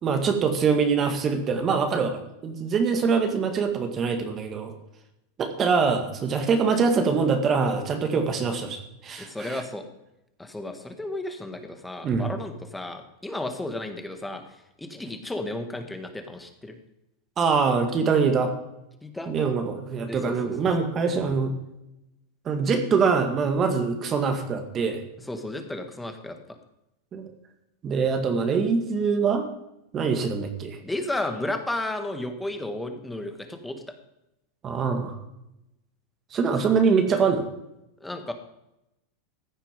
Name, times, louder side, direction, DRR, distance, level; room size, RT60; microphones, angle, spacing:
voice 1, 0.0-4.7 5.4-9.6 12.0-12.3 17.4-18.5 19.3-21.5 22.5-25.0 27.1-27.3 27.8-29.4 29.9-30.8 34.6-35.2 36.3-37.5, right 5 dB, 30° right, 6 dB, 1.9 m, -24 dB
voice 2, 9.2-9.8 10.4-14.4 14.8-16.8 19.0-19.3 20.1-20.4 25.3-26.6 30.8-33.8 38.0-38.3, left 2 dB, 5° left, 6 dB, 1.7 m, -33 dB
15.0 x 9.0 x 5.3 m, 0.87 s
supercardioid pair, 130°, 0 cm